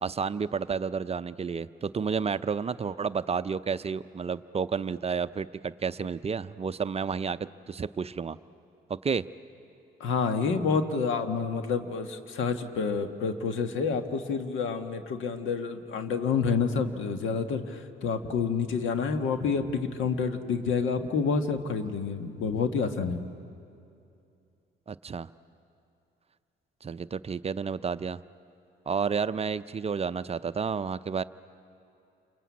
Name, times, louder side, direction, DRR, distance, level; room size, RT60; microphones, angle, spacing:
voice 1, 0.0-7.4 7.7-8.4 9.0-9.2 24.9-25.3 26.8-28.2 28.9-31.2, right 6 dB, 30° right, 13 dB, 0.5 m, -31 dB
voice 2, 10.0-23.2, left 5 dB, 80° left, 7 dB, 1.6 m, -28 dB
28.5 x 23.5 x 8.5 m, 2.6 s
cardioid pair, 90°, 20 cm